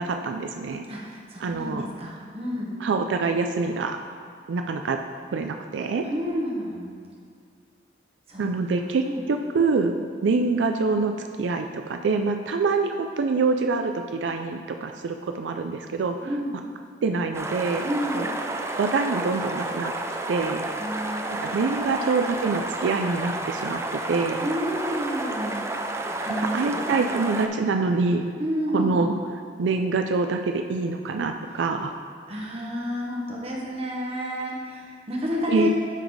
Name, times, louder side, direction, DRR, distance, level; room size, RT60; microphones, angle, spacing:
voice 1, 0.0-0.8 1.4-1.9 2.8-4.0 4.5-5.0 5.3-6.1 8.4-11.1 11.4-16.1 17.0-17.9 18.1-18.2 18.8-19.9 20.3-20.7 21.4-24.5 26.4-28.3 28.7-29.2 29.6-31.9 35.5-35.7, right 4 dB, 85° right, 5 dB, 0.4 m, -25 dB
voice 2, 0.9-2.8 6.0-6.8 8.3-8.5 9.1-9.2 16.2-16.5 17.8-18.3 20.8-22.2 24.4-26.8 28.4-29.1 32.3-35.7, equal, 35° right, -3 dB, 1.2 m, -30 dB
sound 1, 17.3-27.5, right 2 dB, 15° right, 0.4 m, -31 dB
9.9 x 4.0 x 4.7 m, 2.1 s
head